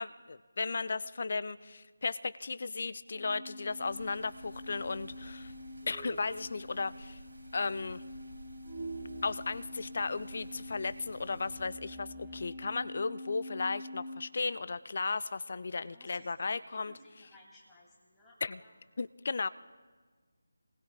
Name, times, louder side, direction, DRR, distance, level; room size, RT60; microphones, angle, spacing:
voice 1, 0.0-5.5 5.9-7.2 7.5-8.0 9.2-16.9 18.4-18.6 19.0-19.5, left 4 dB, 45° left, 16 dB, 0.4 m, -35 dB
sound 1, 3.1-14.3, left 1 dB, 15° right, 1.5 m, -46 dB
sound 2, 3.7-11.6, right 1 dB, 85° right, 2.0 m, -53 dB
voice 2, 12.2-12.5 15.8-18.7, left 1 dB, 5° left, -6 dB, 2.3 m, -60 dB
28.0 x 19.5 x 2.3 m, 1.4 s
figure-of-eight pair, 160°, 0 cm